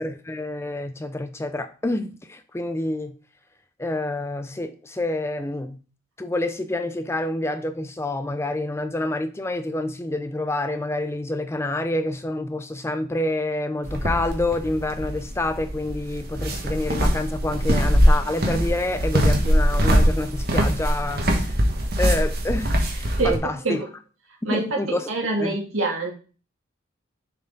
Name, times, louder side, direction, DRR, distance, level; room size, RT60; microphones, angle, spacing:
voice 1, 0.0-3.1 3.8-5.8 6.2-21.5 22.0-23.8 24.5-25.1 25.4-25.6, left 2 dB, 15° left, 0.4 m, -28 dB
sound 1, 13.8-23.4, equal, 50° right, 1.2 m, -22 dB
voice 2, 24.4-26.1, right 2 dB, 80° right, 2.2 m, -25 dB
6.8 x 4.3 x 3.8 m
head